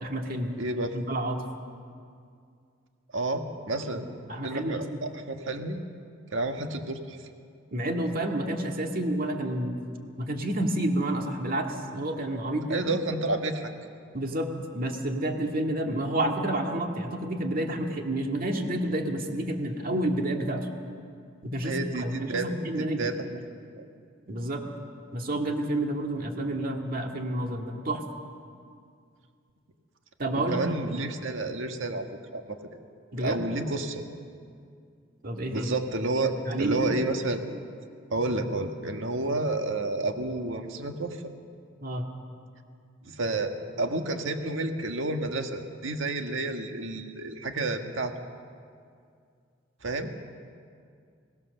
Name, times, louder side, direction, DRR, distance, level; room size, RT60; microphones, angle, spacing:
voice 1, 0.0-0.5 0.9-1.4 3.9-4.0 4.3-5.0 7.7-9.8 10.2-13.0 14.1-20.7 21.4-23.1 24.3-24.6 25.1-28.0 30.2-31.0 33.1-33.4 35.2-35.7 36.2-37.0 41.8-42.1, right 1 dB, 45° right, 2 dB, 2.1 m, -29 dB
voice 2, 0.6-1.1 3.1-4.0 4.4-5.8 6.3-7.2 12.7-13.7 21.6-22.5 22.8-23.1 23.7-23.9 30.5-32.1 32.3-32.6 33.2-34.0 35.5-37.4 38.1-41.2 43.0-48.1 49.8-50.1, right 2 dB, 75° right, 5 dB, 1.6 m, -30 dB
23.0 x 18.0 x 6.7 m, 2.3 s
head